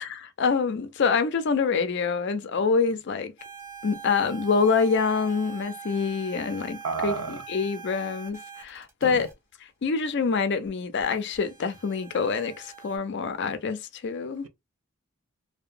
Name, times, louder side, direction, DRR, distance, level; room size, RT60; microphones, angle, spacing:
voice 1, 0.0-3.3 3.8-9.3 9.8-14.5, left 5 dB, 55° left, 0.4 m, -26 dB
sound 1, 3.4-9.3 10.7-10.8 11.0-13.0, right 7 dB, 10° right, 1.1 m, -43 dB
voice 2, 6.8-7.4 9.0-9.3, right 5 dB, 70° right, 0.5 m, -31 dB
2.8 x 2.1 x 2.5 m
head